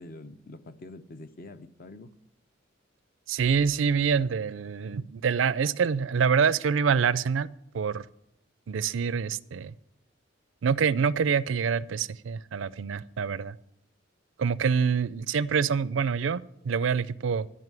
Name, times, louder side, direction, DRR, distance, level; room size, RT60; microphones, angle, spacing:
voice 1, 0.0-2.1, left 2 dB, 50° left, 0.7 m, -45 dB
voice 2, 3.3-7.5 7.7-8.1 8.7-9.7 10.6-13.6 14.4-17.5, right 6 dB, 75° right, 0.4 m, -26 dB
12.5 x 5.5 x 9.1 m
head